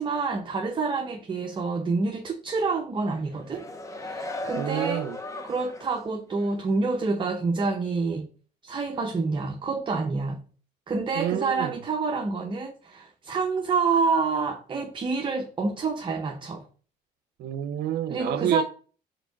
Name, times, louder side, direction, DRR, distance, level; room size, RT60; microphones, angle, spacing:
voice 1, 0.0-3.7 3.9-5.1 5.4-8.3 8.6-10.4 10.9-16.7 18.1-18.6, right 4 dB, 30° right, 0.8 m, -27 dB
sound 1, 3.3-6.0 6.4-6.5, left 2 dB, 20° left, 0.8 m, -37 dB
voice 2, 4.6-5.2 11.1-11.8 17.4-18.6, right 11 dB, 75° right, 0.6 m, -29 dB
4.9 x 4.5 x 4.5 m
cardioid pair, 110°, 17 cm